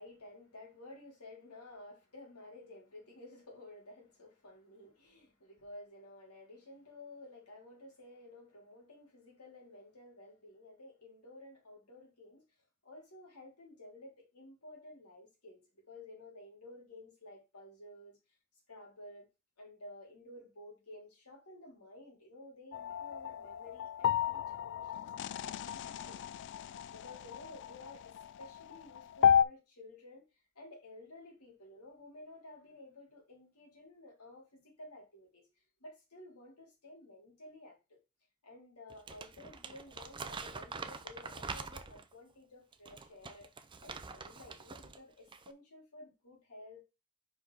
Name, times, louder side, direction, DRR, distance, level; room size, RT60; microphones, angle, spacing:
voice 1, 0.0-12.6 12.8-18.4 18.7-19.3 19.6-38.0 38.4-46.8, left 2 dB, 80° left, 3.3 m, -53 dB
sound 1, 22.7-29.4, left 8 dB, 55° left, 0.3 m, -33 dB
Crumpling crinkling, 38.9-42.1 42.7-45.0 45.3-45.5, right 4 dB, 20° right, 0.5 m, -45 dB
5.0 x 4.8 x 3.9 m
head